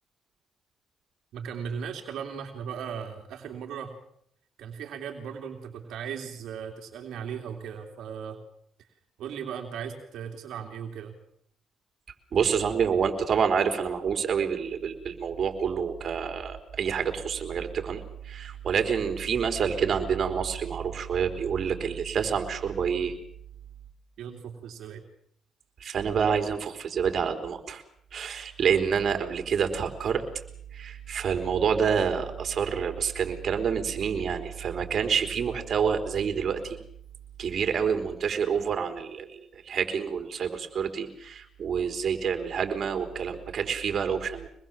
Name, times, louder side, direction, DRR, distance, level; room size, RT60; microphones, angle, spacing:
voice 1, 1.3-3.9 4.6-8.4 9.2-11.1 24.2-25.0, right 7 dB, 80° right, 3 dB, 3.1 m, -37 dB
voice 2, 12.3-23.1 25.8-27.8 28.1-30.2 30.7-36.8 37.4-39.4 39.7-44.5, right 7 dB, 55° right, 7 dB, 4.0 m, -28 dB
25.5 x 21.0 x 7.4 m, 0.68 s
cardioid pair, 90°, 0 cm